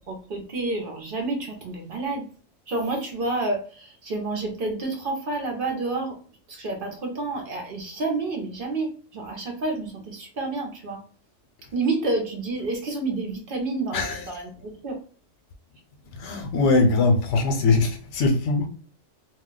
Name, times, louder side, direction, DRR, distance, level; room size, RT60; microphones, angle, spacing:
voice 1, 0.0-2.3 2.7-6.2 6.5-11.0 11.7-15.0, right 2 dB, 55° right, 0.7 m, -29 dB
voice 2, 16.1-18.7, left 3 dB, 80° left, 1.0 m, -21 dB
2.3 x 2.1 x 3.7 m
omnidirectional pair, 1.2 m